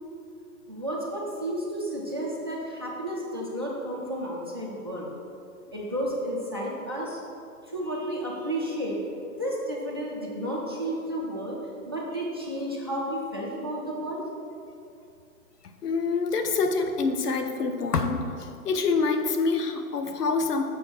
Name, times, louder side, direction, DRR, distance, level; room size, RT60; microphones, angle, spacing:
voice 1, 0.7-5.1 5.7-7.2 7.6-9.0 9.4-11.6 11.8-14.2, equal, 20° right, -5 dB, 0.3 m, -32 dB
voice 2, 15.8-20.6, left 4 dB, 85° left, 6 dB, 0.9 m, -26 dB
6.9 x 4.5 x 5.0 m, 2.5 s
hypercardioid pair, 150°, 46 cm